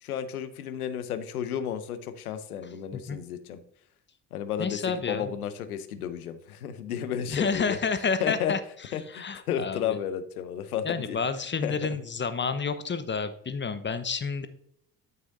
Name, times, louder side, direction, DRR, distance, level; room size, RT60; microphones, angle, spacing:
voice 1, 0.0-3.6 4.3-7.8 8.2-8.5 8.9-11.2 11.6-11.7, left 9 dB, 85° left, 11 dB, 0.7 m, -32 dB
voice 2, 4.6-5.3 7.3-8.6 9.1-10.0 10.8-14.5, left 5 dB, 25° left, 11 dB, 0.9 m, -30 dB
11.5 x 6.2 x 2.6 m, 0.69 s
hypercardioid pair, 50°, 43 cm